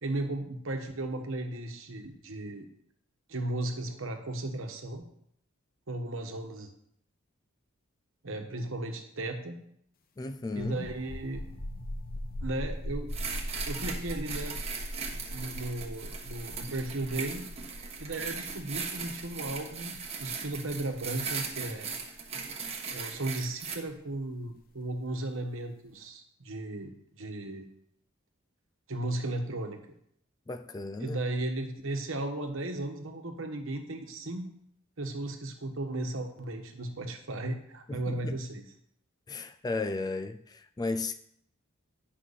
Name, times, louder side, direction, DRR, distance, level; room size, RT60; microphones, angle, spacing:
voice 1, 0.0-2.7 3.3-5.0 5.9-6.7 8.2-9.6 10.5-11.4 12.4-13.1 13.7-14.6 15.1-17.5 18.0-21.9 22.9-26.9 27.2-27.7 28.9-29.8 31.0-34.5 35.0-38.6, right 2 dB, 70° right, 1.2 m, -35 dB
voice 2, 10.2-10.9 30.5-31.2 37.9-38.4 39.3-41.2, left 3 dB, 20° left, 0.3 m, -35 dB
sound 1, 10.5-23.9, equal, 45° left, 0.7 m, -40 dB
sound 2, 13.1-23.8, right 5 dB, 30° right, 1.1 m, -38 dB
9.9 x 6.1 x 4.1 m
head